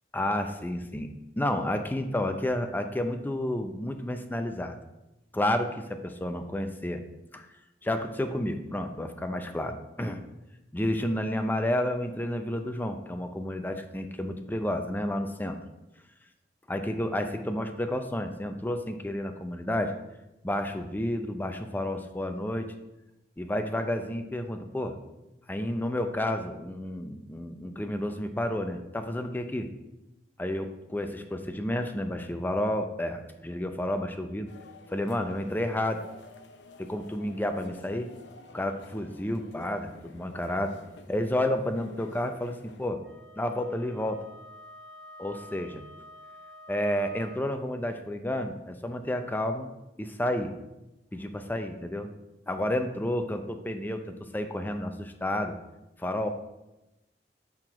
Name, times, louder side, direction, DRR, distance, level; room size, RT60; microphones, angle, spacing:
voice 1, 0.1-1.1 1.4-4.8 5.3-7.0 7.3-7.5 7.8-10.2 10.7-15.6 16.7-19.9 20.4-22.7 23.4-25.0 25.5-29.7 30.4-34.5 34.9-36.0 36.8-38.1 38.5-40.8 41.1-43.0 43.4-44.2 45.2-45.8 46.7-49.7 50.0-50.5 51.1-52.1 52.5-55.6 56.0-56.3, left 1 dB, 10° left, 7 dB, 0.5 m, -31 dB
sound 1, 34.5-42.9, left 3 dB, 70° left, 0.6 m, -52 dB
Wind instrument woodwind instrument, 43.0-47.6, left 1 dB, 70° right, 0.6 m, -49 dB
5.8 x 4.6 x 4.9 m, 0.97 s
head